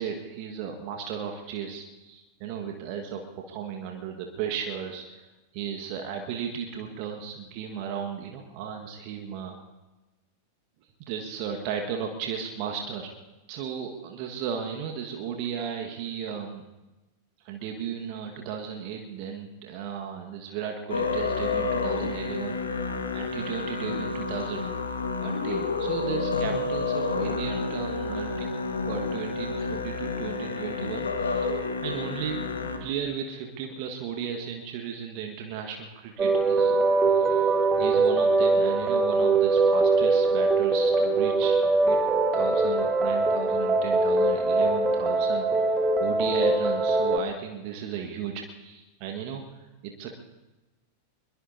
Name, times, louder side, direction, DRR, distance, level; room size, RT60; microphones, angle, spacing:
voice 1, 0.0-5.3 5.5-9.6 11.0-13.1 13.5-16.6 17.4-24.6 25.2-28.5 28.8-31.5 31.8-32.4 32.6-36.8 37.1-42.0 42.3-49.4 49.8-50.2, right 7 dB, 45° right, 3 dB, 1.6 m, -35 dB
Musical instrument, 20.9-32.8, left 4 dB, 75° left, 1.6 m, -29 dB
sound 1, 36.2-47.2, right 3 dB, 20° right, 1.5 m, -22 dB
23.5 x 21.5 x 2.8 m, 1.1 s
figure-of-eight pair, 90°, 0 cm